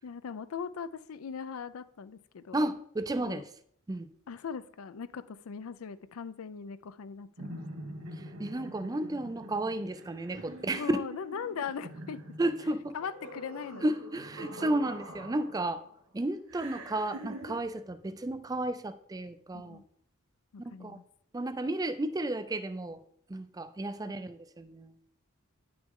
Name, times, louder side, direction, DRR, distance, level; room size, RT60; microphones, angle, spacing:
voice 1, 0.0-2.7 3.2-3.5 4.3-7.6 10.7-12.2 12.9-13.9 19.5-19.8 20.5-21.0 24.0-24.2, left 6 dB, 75° left, 14 dB, 0.4 m, -40 dB
voice 2, 2.5-3.5 3.9-4.1 8.2-11.0 12.4-13.0 13.8-15.8 16.1-19.8 20.6-21.0 21.3-23.0 23.3-24.9, right 1 dB, 15° right, 12 dB, 0.4 m, -33 dB
sound 1, 7.4-15.9 16.5-17.6, right 1 dB, 80° right, 1.8 m, -45 dB
9.4 x 6.1 x 3.6 m, 0.65 s
head